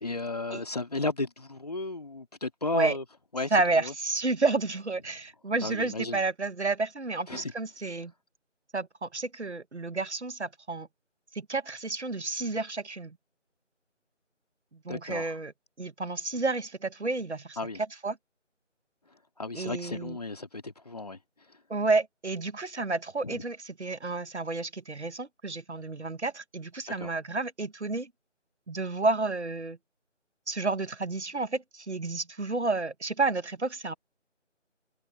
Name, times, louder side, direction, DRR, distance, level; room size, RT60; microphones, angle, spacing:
voice 1, 0.0-3.0 3.3-3.9 5.6-6.2 7.3-7.5 14.9-15.3 17.6-17.8 19.4-21.2 23.2-23.4 27.0-27.1, left 2 dB, 30° left, 2.3 m, -34 dB
voice 2, 3.5-8.1 8.7-10.9 11.3-13.2 14.8-15.5 15.8-17.6 18.0-18.2 19.5-20.2 21.7-28.1 28.7-29.8 30.5-33.9, right 3 dB, 60° right, 1.2 m, -30 dB
figure-of-eight pair, 165°, 37 cm